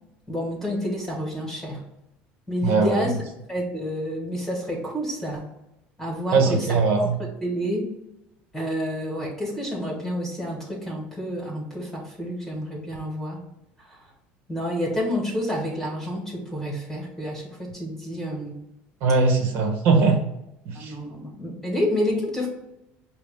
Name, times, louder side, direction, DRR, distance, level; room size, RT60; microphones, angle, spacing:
voice 1, 0.3-1.8 2.5-3.2 3.5-5.5 6.0-7.9 8.5-13.4 13.8-14.0 14.5-18.6 20.7-22.5, equal, 10° left, -3 dB, 1.5 m, -29 dB
voice 2, 2.6-3.0 6.3-7.0 19.0-20.2 20.7-20.9, right 4 dB, 65° right, 4 dB, 1.1 m, -20 dB
5.7 x 2.3 x 3.5 m, 0.88 s
cardioid pair, 130°, 4 cm